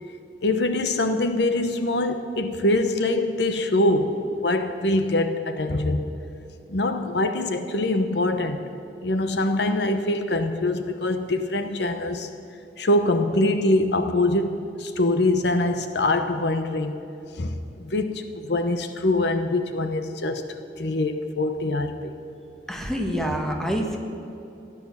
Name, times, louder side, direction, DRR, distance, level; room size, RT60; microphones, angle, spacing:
voice 1, 0.4-6.0 6.7-8.6 9.0-12.3 12.8-17.0 17.4-20.5 20.8-22.1, left 2 dB, 65° left, 0.9 m, -24 dB
voice 2, 22.7-24.0, equal, ahead, 1.5 m, -26 dB
15.5 x 10.5 x 7.3 m
head